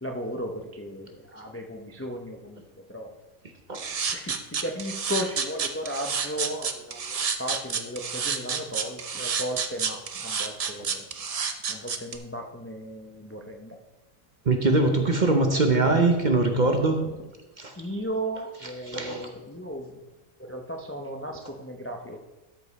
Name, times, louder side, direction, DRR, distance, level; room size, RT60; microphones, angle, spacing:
voice 1, 0.0-2.6 2.9-3.1 4.1-11.1 11.7-13.8 15.7-16.0 16.4-16.6 17.0-17.2 17.7-20.0 20.5-22.2, equal, 15° left, 2 dB, 0.4 m, -35 dB
sound 1, 3.7-12.2, right 6 dB, 55° right, 0.4 m, -29 dB
voice 2, 14.5-17.0 17.6-17.7 18.9-19.2, right 2 dB, 40° right, 4 dB, 0.8 m, -22 dB
13.0 x 5.2 x 4.1 m, 1.1 s
omnidirectional pair, 1.4 m